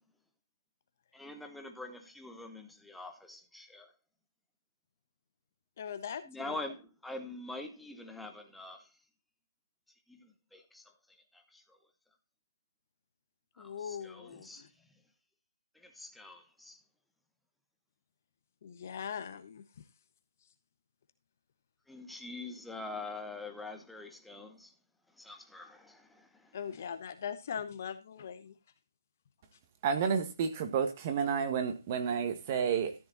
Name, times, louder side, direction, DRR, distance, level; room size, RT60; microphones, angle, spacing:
voice 1, 1.1-3.9 6.2-9.0 10.1-11.8 13.6-14.7 15.7-16.8 21.9-24.7 25.1-26.6, left 2 dB, ahead, 1.1 m, -45 dB
voice 2, 5.8-6.6 13.6-14.7 18.6-19.8 26.5-28.5, left 7 dB, 40° left, 1.2 m, -41 dB
voice 3, 29.8-33.0, right 6 dB, 30° right, 1.7 m, -30 dB
13.5 x 6.9 x 4.1 m
figure-of-eight pair, 155°, 2 cm